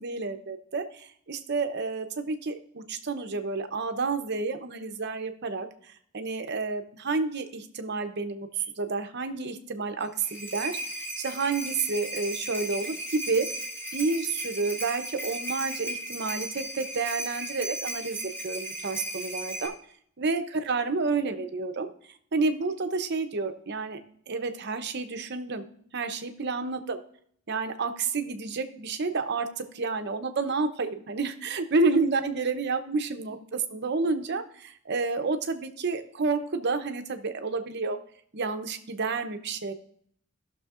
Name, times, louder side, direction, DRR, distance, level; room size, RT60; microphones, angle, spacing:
voice 1, 0.0-5.7 6.1-10.8 11.2-13.5 13.9-18.2 18.4-19.7 20.2-21.9 22.3-24.0 24.3-25.6 25.9-27.0 27.5-38.0 38.3-39.7, right 4 dB, 55° right, 7 dB, 0.8 m, -30 dB
sound 1, 10.0-19.7, right 1 dB, 10° left, 1.9 m, -36 dB
16.0 x 6.3 x 2.5 m, 0.64 s
head